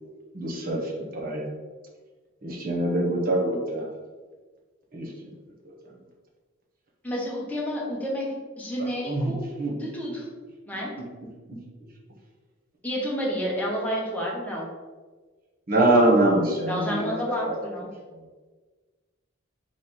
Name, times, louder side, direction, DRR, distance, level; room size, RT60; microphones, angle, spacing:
voice 1, 0.3-0.8 1.1-1.4 2.4-3.8 4.9-5.1 9.0-9.3 9.6-9.7 15.7-17.1, right 1 dB, 45° right, -2 dB, 0.9 m, -23 dB
voice 2, 7.0-9.4 9.7-10.2 10.7-10.9 12.8-14.7 16.7-17.9, equal, 10° left, -4 dB, 0.9 m, -30 dB
3.9 x 3.2 x 4.1 m, 1.4 s
head